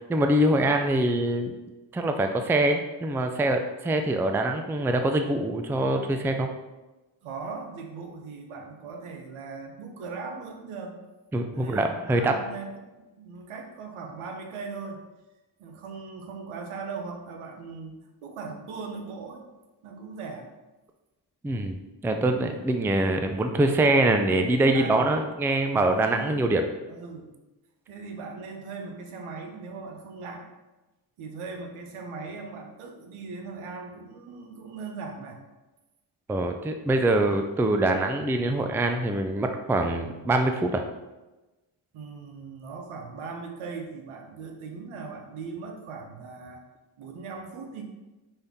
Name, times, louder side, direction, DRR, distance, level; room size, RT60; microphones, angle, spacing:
voice 1, 0.0-1.5 1.9-6.5 11.3-12.3 21.4-21.8 22.0-26.6 36.3-40.8, right 1 dB, 5° right, 5 dB, 0.3 m, -24 dB
voice 2, 7.2-11.0 11.5-12.7 13.0-15.0 15.6-19.5 19.8-20.5 22.4-22.6 24.7-25.1 25.7-26.5 26.9-27.3 27.9-30.5 31.2-35.4 37.3-37.4 41.9-46.6 47.0-47.8, right 4 dB, 80° right, 3 dB, 0.9 m, -39 dB
5.4 x 2.7 x 3.5 m, 1.1 s
supercardioid pair, 55°, 49 cm